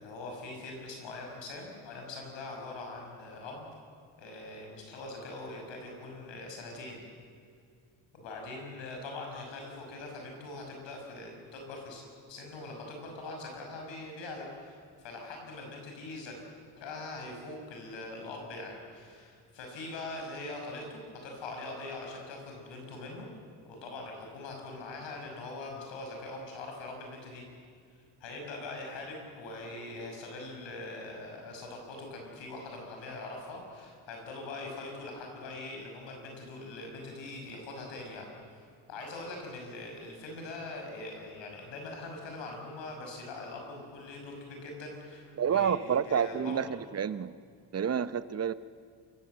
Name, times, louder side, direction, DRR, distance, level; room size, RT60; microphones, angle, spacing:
voice 1, 0.0-3.7 4.2-7.0 8.1-16.4 16.8-23.3 23.7-27.5 28.2-45.8 46.0-46.6, left 2 dB, 85° left, 2 dB, 6.1 m, -42 dB
voice 2, 45.4-47.3 47.7-48.5, right 8 dB, 35° right, 15 dB, 0.8 m, -29 dB
28.0 x 16.0 x 7.9 m, 2.2 s
cardioid pair, 100°, 43 cm